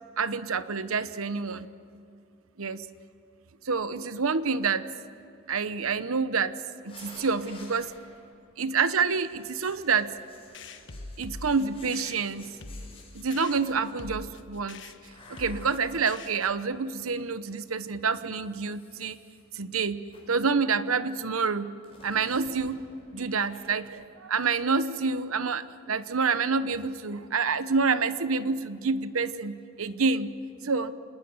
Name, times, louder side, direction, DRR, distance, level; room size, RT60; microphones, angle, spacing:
voice 1, 0.2-1.7 2.6-2.8 3.6-4.9 5.5-6.5 6.8-7.9 8.6-10.1 11.2-12.6 13.1-14.8 15.4-19.2 19.5-21.7 22.0-22.9 23.1-30.4 30.6-30.9, right 5 dB, 85° right, 13 dB, 1.0 m, -28 dB
sound 1, 6.9-8.4 9.1-14.1 15.1-17.3 18.2-19.4 20.1-20.5 21.8-24.1 24.4-24.5, left 2 dB, 25° left, 7.0 m, -52 dB
sound 2, 10.5-16.7, left 2 dB, 60° left, 1.4 m, -44 dB
26.5 x 20.0 x 9.6 m, 2.4 s
head